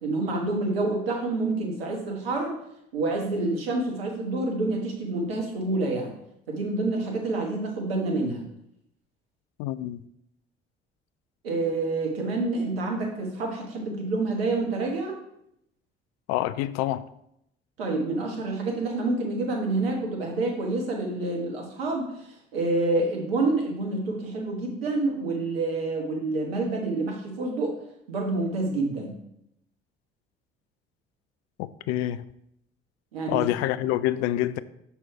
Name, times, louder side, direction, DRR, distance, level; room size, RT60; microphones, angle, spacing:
voice 1, 0.0-2.6 2.9-6.1 6.5-8.4 11.4-15.2 17.8-27.8 28.1-29.2 33.1-33.5, right 2 dB, 75° right, 1.3 m, -28 dB
voice 2, 9.6-10.0 16.3-17.1 31.6-32.2 33.3-34.6, left 14 dB, 55° left, 0.4 m, -27 dB
6.1 x 4.3 x 4.6 m
figure-of-eight pair, 50°, 30 cm